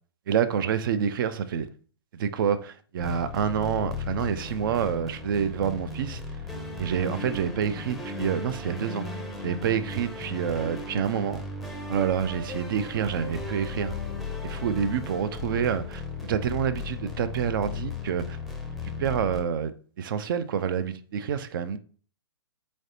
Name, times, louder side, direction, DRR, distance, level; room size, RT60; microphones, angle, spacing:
voice 1, 0.3-1.7 2.1-6.2 6.8-9.1 9.4-11.4 11.9-13.9 14.4-18.4 19.0-19.7 20.0-21.8, right 8 dB, 50° right, 0.4 m, -28 dB
sound 1, 3.0-19.4, left 3 dB, ahead, 0.6 m, -36 dB
4.1 x 3.2 x 2.7 m
hypercardioid pair, 125°, 14 cm